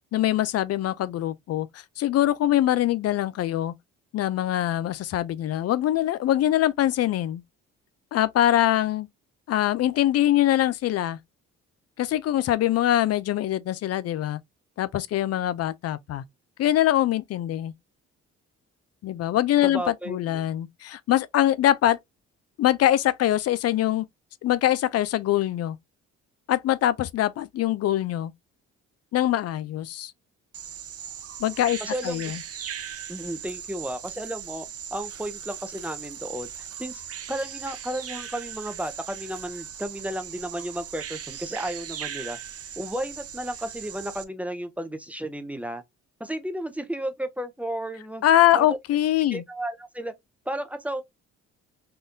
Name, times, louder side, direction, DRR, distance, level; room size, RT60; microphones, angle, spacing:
voice 1, 0.1-3.7 4.1-7.4 8.1-9.1 9.5-11.2 12.0-14.4 14.8-16.2 16.6-17.7 19.0-22.0 22.6-24.1 24.4-25.8 26.5-28.3 29.1-30.1 31.4-32.4 48.2-49.4, left 13 dB, 55° left, 0.4 m, -23 dB
voice 2, 19.6-20.4 31.8-32.2 33.1-34.6 34.9-36.5 36.8-37.0 37.3-42.4 42.8-45.8 46.2-48.2 48.5-48.7 49.3-50.1 50.5-51.0, right 1 dB, 5° right, 0.6 m, -33 dB
Bird vocalization bird call bird song, 30.5-44.2, right 8 dB, 50° right, 0.6 m, -39 dB
3.6 x 2.3 x 2.6 m
cardioid pair, 90°, 30 cm